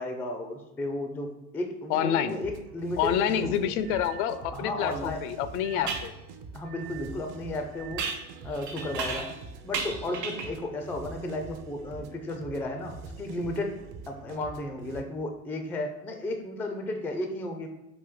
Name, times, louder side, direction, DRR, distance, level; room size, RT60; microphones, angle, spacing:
voice 1, 0.0-3.7 4.4-5.2 5.7-5.9 6.5-8.1 8.4-9.3 9.6-13.8 14.1-17.7, left 1 dB, 5° left, 5 dB, 0.3 m, -34 dB
voice 2, 1.9-2.3 3.0-6.1, left 9 dB, 65° left, 12 dB, 0.5 m, -27 dB
sound 1, 2.2-15.0, right 4 dB, 45° right, 0.6 m, -45 dB
sound 2, 3.8-4.4 5.6-6.1 6.6-7.2 7.7-8.2 8.7-9.3, right 12 dB, 60° right, 1.0 m, -46 dB
sound 3, 4.9-5.0 5.9-6.1 8.0-9.4 9.7-10.6, right 5 dB, 85° right, 0.8 m, -34 dB
5.2 x 2.6 x 3.6 m, 0.95 s
hypercardioid pair, 75°, 48 cm